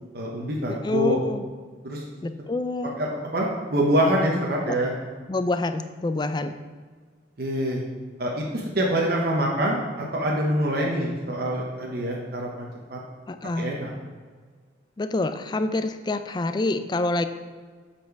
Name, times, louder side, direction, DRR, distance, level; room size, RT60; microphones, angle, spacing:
voice 1, 0.1-1.2 1.8-2.0 3.0-4.9 7.4-7.8 8.2-13.0 13.6-13.9, equal, 55° right, -2 dB, 0.9 m, -25 dB
voice 2, 0.7-1.4 2.2-3.0 4.7-4.8 5.3-6.6 13.3-13.8 15.0-17.3, left 2 dB, 25° left, 10 dB, 0.3 m, -27 dB
8.4 x 4.3 x 4.6 m, 1.5 s
head